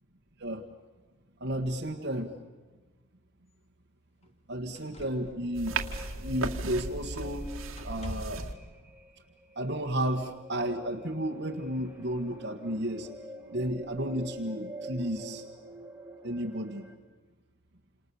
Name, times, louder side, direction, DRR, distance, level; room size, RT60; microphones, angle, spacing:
voice 1, 1.4-2.3 4.5-5.8 6.2-7.5 7.8-8.5 9.6-13.1 13.5-15.4 16.2-16.8, right 1 dB, 55° right, 0 dB, 1.7 m, -32 dB
sound 1, 3.5-3.6 4.2-4.3 4.7-6.7 7.1-7.4 7.7-8.5 9.6-9.7, equal, 30° left, 3.0 m, -47 dB
sound 2, 5.5-16.9, equal, 10° right, 2.1 m, -47 dB
sound 3, 5.5-8.5, right 3 dB, 85° right, 2.2 m, -35 dB
29.0 x 27.5 x 7.1 m, 1.3 s
head